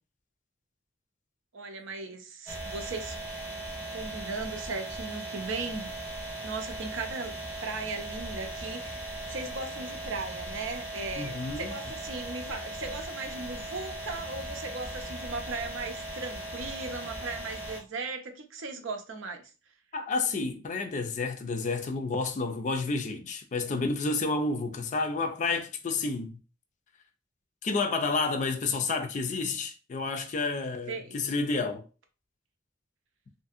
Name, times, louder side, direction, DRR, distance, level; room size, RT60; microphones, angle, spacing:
voice 1, 1.5-3.4 3.9-5.9 6.4-7.3 7.6-9.0 9.3-19.5 30.9-31.2, right 3 dB, 80° right, 0.5 m, -37 dB
sound 1, 2.5-17.8, right 1 dB, 10° right, 0.8 m, -38 dB
voice 2, 11.2-11.7 19.9-26.4 27.6-31.8, left 3 dB, 40° left, 0.4 m, -30 dB
2.7 x 2.6 x 2.4 m
head